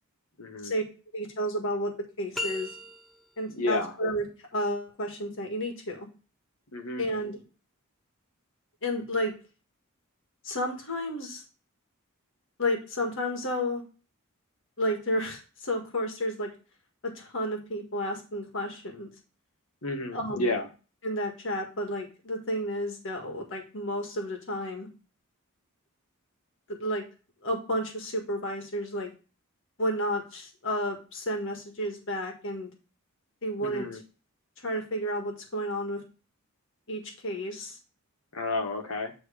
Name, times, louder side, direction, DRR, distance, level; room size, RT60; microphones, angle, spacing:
voice 1, 0.4-0.7 3.6-3.9 6.7-7.0 19.8-20.7 33.6-34.0 38.3-39.1, left 2 dB, 80° left, 5 dB, 1.3 m, -31 dB
voice 2, 1.1-1.9 2.2-2.7 3.4-4.2 4.5-6.1 7.0-7.4 8.8-9.3 10.4-11.4 12.6-13.8 14.8-16.5 17.0-19.1 20.1-20.5 21.0-24.9 26.7-27.0 27.4-29.1 29.8-32.7 33.4-33.9 34.6-36.0 36.9-37.8, equal, 60° left, 2 dB, 1.6 m, -31 dB
sound 1, 2.3-3.5, left 2 dB, ahead, 0.5 m, -36 dB
9.0 x 3.1 x 4.9 m, 0.34 s
head